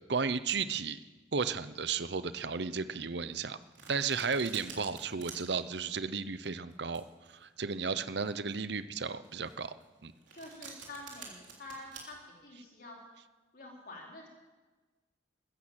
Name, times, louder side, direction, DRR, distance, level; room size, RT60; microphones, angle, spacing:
voice 1, 0.1-1.0 1.3-3.6 3.9-7.0 7.4-9.7 10.0-10.1, right 5 dB, 60° right, 14 dB, 0.8 m, -34 dB
Domestic sounds home sounds, 3.3-12.0, right 6 dB, 75° right, 3.4 m, -50 dB
voice 2, 10.3-13.0 13.5-14.3, left 2 dB, 50° left, -1 dB, 4.1 m, -47 dB
14.5 x 12.5 x 7.6 m, 1.3 s
head